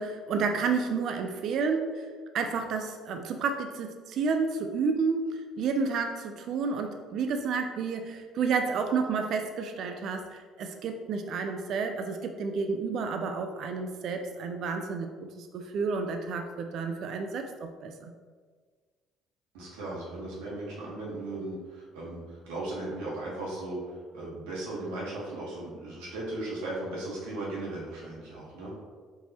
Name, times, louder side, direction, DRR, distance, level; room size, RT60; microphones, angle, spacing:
voice 1, 0.0-2.1 2.3-15.1 15.4-18.1, right 5 dB, 60° right, 5 dB, 0.3 m, -30 dB
voice 2, 19.5-28.7, right 2 dB, 80° right, -5 dB, 1.2 m, -37 dB
4.5 x 2.8 x 2.8 m, 1.5 s
hypercardioid pair, 60°, 0 cm